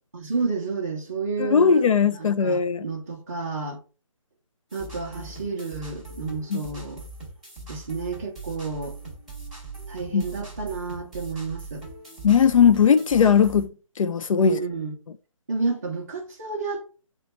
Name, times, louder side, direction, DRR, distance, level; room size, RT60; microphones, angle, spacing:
voice 1, 0.1-3.8 4.7-7.0 7.7-9.0 9.9-11.8 14.4-15.0 15.5-16.9, right 4 dB, 30° right, 0.6 m, -31 dB
voice 2, 1.4-2.8 6.5-6.6 10.1-10.2 12.2-13.7 14.0-14.6, left 7 dB, 80° left, 0.4 m, -18 dB
sound 1, 4.7-13.7, right 3 dB, ahead, 0.8 m, -41 dB
4.3 x 2.2 x 4.0 m
hypercardioid pair, 175°, 17 cm